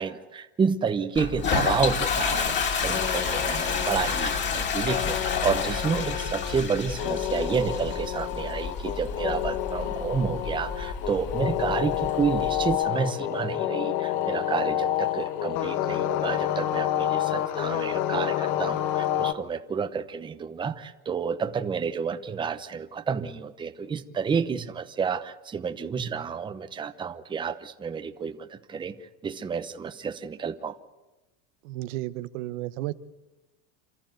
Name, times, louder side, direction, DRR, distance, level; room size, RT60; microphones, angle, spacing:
voice 1, 0.0-30.8, right 6 dB, 15° right, 10 dB, 0.9 m, -30 dB
Toilet flush, 1.1-12.7, left 6 dB, 30° left, 2.7 m, -30 dB
sound 1, 2.9-19.3, left 12 dB, 50° left, 1.3 m, -29 dB
voice 2, 31.6-32.9, right 16 dB, 90° right, 13 dB, 1.1 m, -33 dB
28.5 x 14.5 x 9.3 m, 1.0 s
cardioid pair, 165°, 36 cm